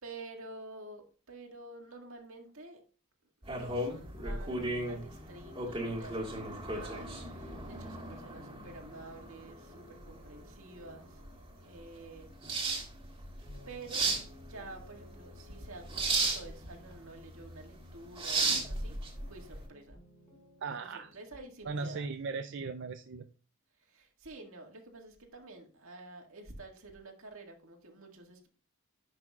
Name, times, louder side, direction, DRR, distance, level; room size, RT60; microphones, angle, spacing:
voice 1, 0.0-2.8 3.4-11.3 11.6-12.3 13.7-14.1 14.4-18.9 19.3-20.0 20.8-20.9 21.1-22.1 23.9-28.5, right 2 dB, 75° right, 2 dB, 1.9 m, -49 dB
sound 1, 3.4-19.6, right 3 dB, 25° right, 1.7 m, -36 dB
sound 2, 4.1-13.1 13.3-17.9 18.5-21.5, left 1 dB, 35° left, 3.8 m, -58 dB
voice 2, 20.6-21.1 21.7-23.3, right 4 dB, 55° right, 8 dB, 0.4 m, -38 dB
10.5 x 6.0 x 2.4 m, 0.36 s
head